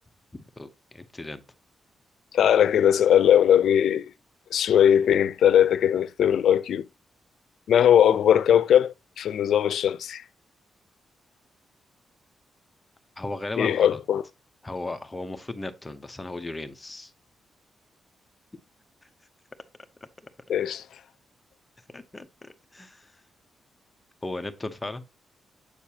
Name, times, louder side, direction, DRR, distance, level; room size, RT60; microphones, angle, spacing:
voice 1, 0.6-1.4 13.2-14.0 14.6-17.1 19.0-19.1 21.9-23.2 24.2-25.0, left 2 dB, 15° left, 0.8 m, -36 dB
voice 2, 2.3-4.1 4.5-6.9 7.7-10.2 13.6-14.2 20.5-20.8, left 9 dB, 80° left, 0.5 m, -20 dB
8.3 x 6.6 x 2.8 m
wide cardioid pair, 130°, 0 cm